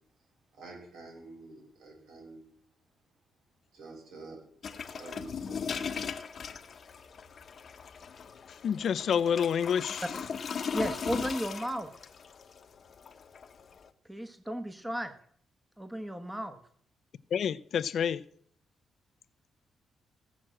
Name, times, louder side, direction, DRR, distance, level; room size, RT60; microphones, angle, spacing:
voice 1, 0.5-2.4 3.7-6.3, right 2 dB, 80° right, 6.6 m, -49 dB
sound 1, 4.6-13.9, left 6 dB, 50° left, 1.0 m, -39 dB
voice 2, 8.6-10.1 17.3-18.2, left 8 dB, 65° left, 0.6 m, -28 dB
voice 3, 10.7-11.9 14.1-15.1 15.8-16.6, equal, 5° right, 1.2 m, -34 dB
16.5 x 6.2 x 7.7 m
cardioid pair, 100°, 0 cm